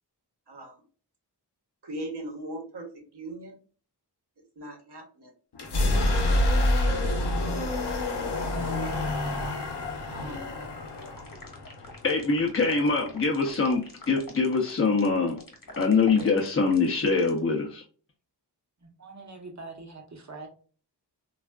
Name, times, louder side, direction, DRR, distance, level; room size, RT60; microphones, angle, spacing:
voice 1, 0.5-0.8 1.8-3.6 4.6-5.3 6.2-7.1 8.6-9.2 10.1-10.7, right 1 dB, 70° right, 2 dB, 0.9 m, -40 dB
sound 1, 5.5-13.3, left 1 dB, 65° left, 0.7 m, -28 dB
sound 2, 10.9-17.4, left 2 dB, 50° left, 1.1 m, -45 dB
voice 2, 12.0-15.4 15.8-17.8, left 4 dB, 30° left, 0 dB, 0.5 m, -24 dB
voice 3, 18.8-20.5, right 3 dB, 40° right, 2 dB, 0.8 m, -43 dB
3.3 x 2.4 x 2.2 m, 0.41 s
wide cardioid pair, 60°, 42 cm